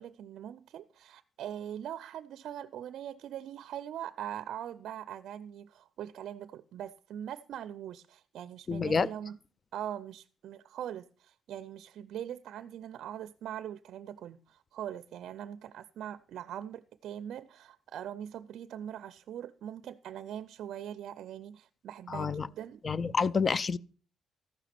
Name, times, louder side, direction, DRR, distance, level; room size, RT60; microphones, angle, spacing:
voice 1, 0.0-9.4 9.7-22.8, right 10 dB, 75° right, 0.4 m, -42 dB
voice 2, 8.7-9.1 22.1-22.5 22.8-23.8, left 5 dB, 40° left, 0.5 m, -28 dB
14.0 x 5.9 x 5.8 m
cardioid pair, 90°, 0 cm